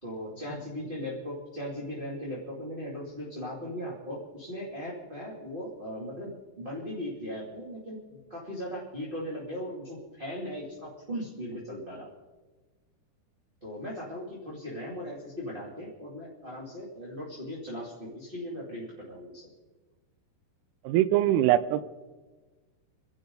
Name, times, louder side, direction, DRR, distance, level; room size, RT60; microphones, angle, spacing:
voice 1, 0.0-12.1 13.6-19.5, equal, 15° right, -5 dB, 2.1 m, -38 dB
voice 2, 20.8-21.9, right 13 dB, 80° right, 15 dB, 2.5 m, -23 dB
28.0 x 12.0 x 3.9 m, 1.3 s
omnidirectional pair, 4.7 m